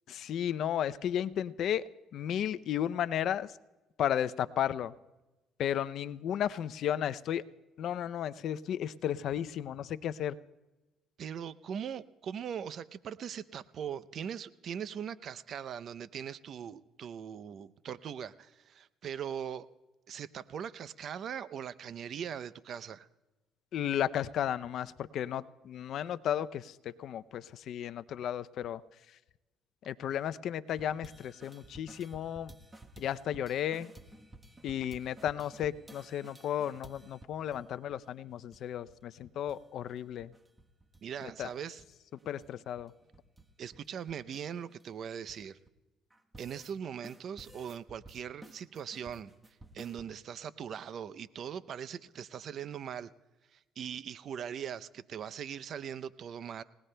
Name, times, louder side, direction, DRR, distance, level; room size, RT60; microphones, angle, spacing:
voice 1, 0.1-1.8 2.1-3.5 4.0-4.9 5.6-7.4 7.8-10.4 23.7-28.8 29.9-32.5 33.0-33.9 34.6-40.3 41.4-41.5 42.3-42.9, left 10 dB, 65° left, 14 dB, 0.5 m, -34 dB
voice 2, 11.2-19.7 20.1-23.1 41.0-41.8 43.6-45.6 46.4-49.3 49.7-53.1 53.5-56.6, right 8 dB, 55° right, 16 dB, 0.5 m, -40 dB
sound 1, 30.7-37.6 37.9-38.0 38.3-39.0 39.2-39.6 39.9-41.5 41.8-45.7 46.1-46.7 47.0-50.1, right 1 dB, 15° right, 1.1 m, -54 dB
29.5 x 18.0 x 2.2 m, 1.1 s
supercardioid pair, 90°, 0 cm